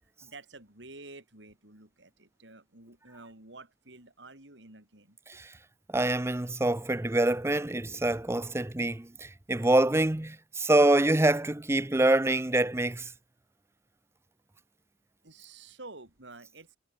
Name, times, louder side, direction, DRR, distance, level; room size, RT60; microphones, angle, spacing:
voice 1, 0.0-5.4 15.2-16.8, right 2 dB, 75° right, 5.9 m, -50 dB
voice 2, 5.9-13.1, right 1 dB, 15° right, 0.7 m, -25 dB
head